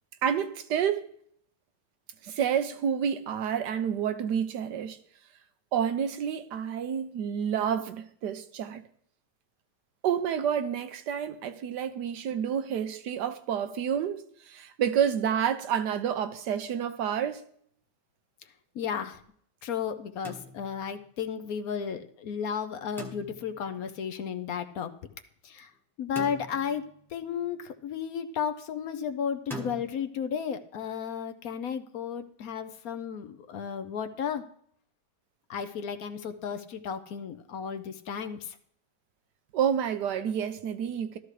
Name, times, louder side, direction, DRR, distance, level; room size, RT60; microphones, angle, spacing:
voice 1, 0.2-1.1 2.2-5.0 5.7-8.8 10.0-17.4 39.5-41.2, right 8 dB, 80° right, 1.4 m, -29 dB
voice 2, 18.7-19.2 19.6-24.9 25.4-25.7 26.0-34.4 35.5-38.6, left 7 dB, 65° left, 1.1 m, -34 dB
sound 1, 20.2-21.0 23.0-23.7 26.2-27.0 29.5-29.8, right 1 dB, ahead, 1.1 m, -42 dB
13.0 x 13.0 x 3.3 m
omnidirectional pair, 1.8 m